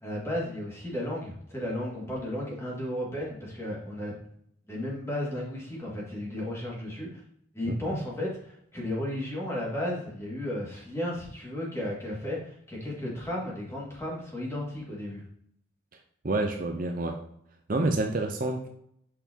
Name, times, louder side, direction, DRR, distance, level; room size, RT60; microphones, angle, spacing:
voice 1, 0.0-4.1 4.7-7.1 7.5-15.2, left 1 dB, 15° left, -4 dB, 2.0 m, -34 dB
voice 2, 16.2-17.2 17.7-18.7, right 2 dB, 40° right, 3 dB, 0.6 m, -28 dB
6.7 x 5.5 x 2.8 m, 0.71 s
head